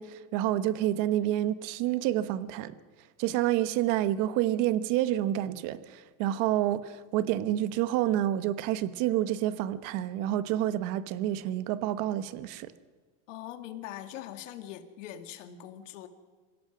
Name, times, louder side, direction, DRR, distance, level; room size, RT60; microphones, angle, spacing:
voice 1, 0.0-2.7 3.2-12.7, right 13 dB, 60° right, 1.1 m, -28 dB
voice 2, 13.3-16.1, left 11 dB, 85° left, 2.1 m, -42 dB
26.0 x 17.0 x 6.1 m
supercardioid pair, 135°, 36 cm